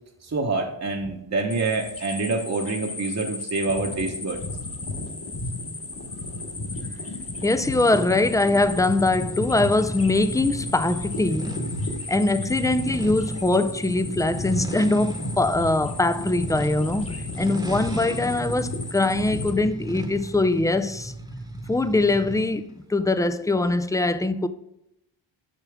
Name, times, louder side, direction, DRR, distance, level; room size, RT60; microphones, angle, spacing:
voice 1, 0.2-4.4, right 3 dB, 30° right, 0.9 m, -26 dB
sound 1, 1.5-19.5, left 3 dB, 30° left, 1.3 m, -38 dB
sound 2, 3.6-19.7, left 2 dB, 55° left, 2.0 m, -35 dB
voice 2, 7.4-11.6 12.1-17.1 17.4-21.1 21.7-24.5, left 2 dB, 10° left, 0.3 m, -22 dB
sound 3, 7.9-22.6, right 1 dB, 10° right, 1.0 m, -36 dB
6.8 x 5.9 x 3.5 m
cardioid pair, 60°, 49 cm